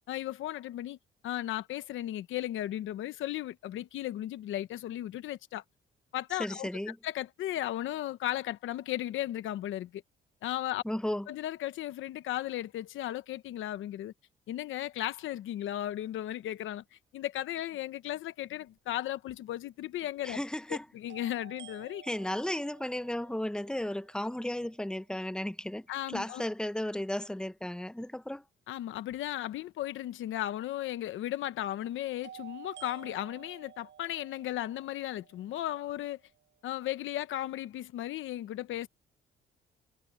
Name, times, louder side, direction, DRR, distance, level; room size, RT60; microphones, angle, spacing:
voice 1, 0.1-1.0 1.2-5.6 6.1-6.7 7.0-10.0 10.4-10.8 11.3-14.1 14.5-20.4 20.7-22.0 25.9-26.4 28.7-36.2 36.6-38.9, left 13 dB, 80° left, 1.0 m, -35 dB
voice 2, 6.4-7.0 10.8-11.3 20.2-20.8 22.0-28.4, left 1 dB, 5° left, 1.0 m, -34 dB
sound 1, 19.1-19.2 21.1-25.0 32.2-36.3, right 10 dB, 65° right, 6.4 m, -53 dB
cardioid pair, 90°, 20 cm